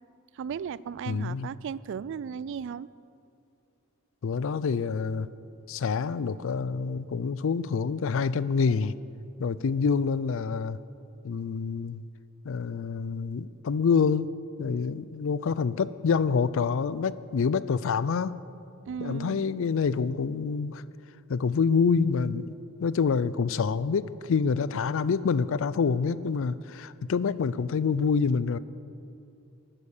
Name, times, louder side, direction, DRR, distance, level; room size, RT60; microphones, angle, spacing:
voice 1, 0.3-2.9 18.9-19.5, right 7 dB, 60° right, 19 dB, 0.3 m, -36 dB
voice 2, 1.1-1.5 4.2-5.3 5.7-8.9 9.4-10.8 11.2-12.0 12.4-14.3 14.6-18.4 19.0-20.8 21.3-22.5 22.8-28.6, left 5 dB, 70° left, 17 dB, 0.4 m, -27 dB
12.5 x 9.8 x 6.6 m, 2.5 s
head